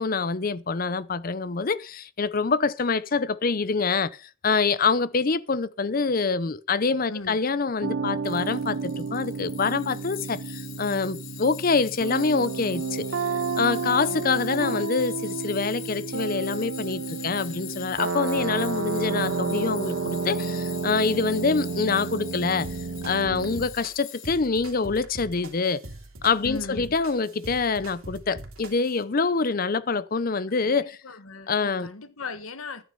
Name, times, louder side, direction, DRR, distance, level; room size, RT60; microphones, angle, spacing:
voice 1, 0.0-13.1 13.6-22.7 23.0-25.8 26.2-31.0 31.5-31.9, left 4 dB, 45° left, 0.6 m, -25 dB
sound 1, 7.8-23.7, right 4 dB, 65° right, 0.7 m, -31 dB
Tools, 8.2-24.7, left 13 dB, 65° left, 1.2 m, -44 dB
sound 2, 22.6-29.0, right 1 dB, 80° right, 2.7 m, -43 dB
voice 2, 26.4-27.0 30.5-32.8, left 3 dB, 80° left, 1.3 m, -38 dB
11.0 x 9.4 x 5.4 m
head